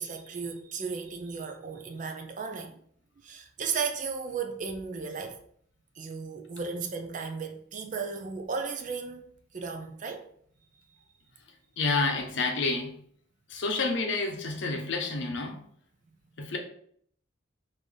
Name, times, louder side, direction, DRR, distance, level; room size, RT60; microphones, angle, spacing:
voice 1, 0.0-2.8 3.2-5.4 6.0-9.2 9.5-10.3, right 5 dB, 40° right, 0.4 m, -35 dB
voice 2, 11.8-13.0 13.5-15.6 16.4-16.6, left 3 dB, 65° left, 0.7 m, -29 dB
3.3 x 2.6 x 3.8 m
head